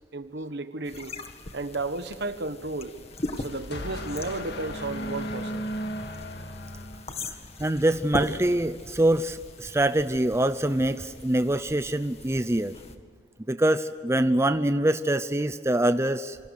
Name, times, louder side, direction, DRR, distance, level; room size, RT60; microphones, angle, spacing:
voice 1, 0.1-1.2 1.5-3.0 3.4-5.7, right 2 dB, 65° right, 1.4 m, -33 dB
sound 1, 0.8-13.0, left 2 dB, 35° left, 1.9 m, -40 dB
sound 2, 3.0-7.6, equal, 65° left, 2.1 m, -36 dB
voice 2, 7.6-12.7 13.5-16.4, right 1 dB, 15° right, 0.6 m, -24 dB
28.0 x 25.0 x 6.6 m
head